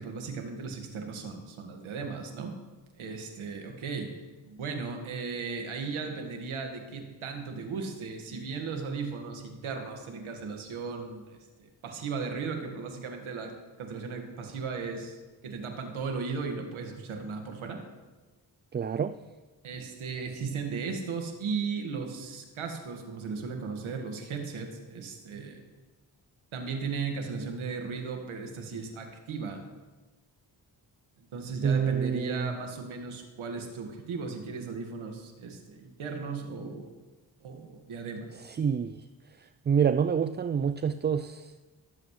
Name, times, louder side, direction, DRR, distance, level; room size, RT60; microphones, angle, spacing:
voice 1, 0.0-2.5 3.0-4.2 4.4-13.5 13.8-15.2 15.4-17.8 19.6-25.6 26.5-29.6 31.2-37.0 37.4-38.3, right 5 dB, 75° right, 3 dB, 2.0 m, -36 dB
voice 2, 18.7-19.2 31.6-32.5 38.4-39.0 39.7-41.5, right 7 dB, 25° right, 12 dB, 0.3 m, -27 dB
20.0 x 7.9 x 3.3 m, 1.2 s
supercardioid pair, 45°, 48 cm